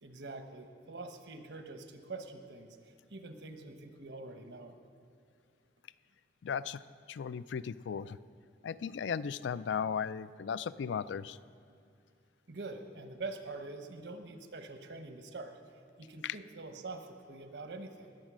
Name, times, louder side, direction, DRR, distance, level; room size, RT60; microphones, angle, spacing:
voice 1, 0.0-4.8 12.5-15.5 16.0-18.2, right 3 dB, 75° right, 7 dB, 1.1 m, -45 dB
voice 2, 6.4-6.8 7.1-8.2 8.6-11.4 16.2-16.4, left 7 dB, 90° left, 16 dB, 0.4 m, -36 dB
19.5 x 7.4 x 6.2 m, 2.4 s
head